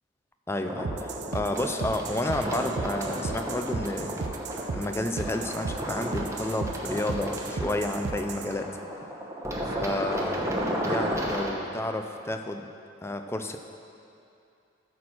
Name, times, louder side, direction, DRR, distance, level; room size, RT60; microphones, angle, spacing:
voice 1, 0.5-4.3 4.7-8.7 9.8-10.5 10.8-12.6 13.0-13.6, left 1 dB, 15° left, 6 dB, 0.4 m, -31 dB
sound 1, 0.6-11.5, equal, 15° right, 1.0 m, -33 dB
sound 2, 0.8-8.5, right 4 dB, 55° right, 0.4 m, -35 dB
13.0 x 4.3 x 6.1 m, 2.6 s
head